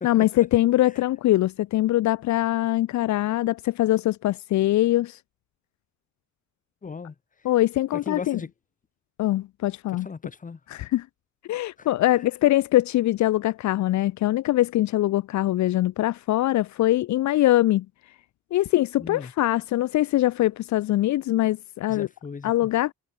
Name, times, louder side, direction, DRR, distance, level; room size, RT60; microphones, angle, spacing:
voice 1, 0.0-5.2 7.4-8.4 9.2-10.1 10.7-11.1 11.4-17.9 18.5-22.1 22.4-22.9, left 15 dB, 70° left, 0.6 m, -22 dB
voice 2, 6.8-7.1 7.9-8.5 9.9-10.6 11.8-11.9 12.1-12.2 19.0-19.3 21.9-22.7, left 5 dB, 25° left, 1.3 m, -37 dB
cardioid pair, 90°, 30 cm